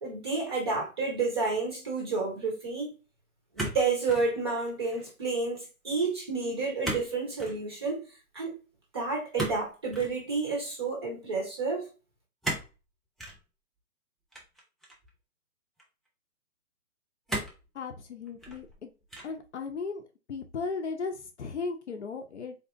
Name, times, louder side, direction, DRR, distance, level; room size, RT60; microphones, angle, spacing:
voice 1, 0.0-2.9 3.6-8.1 8.3-8.6 8.9-11.9, right 4 dB, 20° right, 0.7 m, -30 dB
sound 1, 3.6-4.3 4.7-5.1 6.8-7.1 7.4-7.6 9.4-10.1 12.4-12.7 13.2-13.4 14.3-15.1 15.8-15.9 17.3-17.7 18.3-18.7 19.1-19.5, right 1 dB, ahead, 0.3 m, -35 dB
voice 2, 17.7-18.9 19.2-20.0 20.3-22.6, left 4 dB, 50° left, 0.7 m, -36 dB
3.9 x 3.0 x 2.5 m
hypercardioid pair, 160°, 44 cm